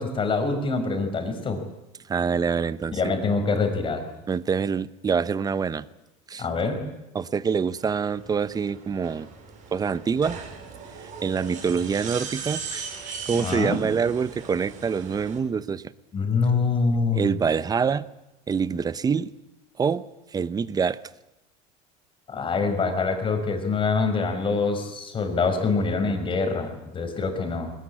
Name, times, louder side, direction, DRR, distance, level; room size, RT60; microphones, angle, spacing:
voice 1, 0.0-1.6 2.9-4.0 6.4-6.8 13.3-13.8 16.1-17.3 22.3-27.7, left 4 dB, 30° left, 6 dB, 5.1 m, -25 dB
voice 2, 2.1-3.0 4.3-5.8 6.3-6.5 7.1-9.3 9.7-10.4 11.0-15.8 17.1-18.1 18.5-19.3 19.8-20.0 20.3-21.0, right 6 dB, 20° right, 17 dB, 0.8 m, -25 dB
sound 1, 7.7-15.4, right 6 dB, 45° right, 5.7 m, -39 dB
21.0 x 20.5 x 9.8 m, 0.94 s
cardioid pair, 130°, 18 cm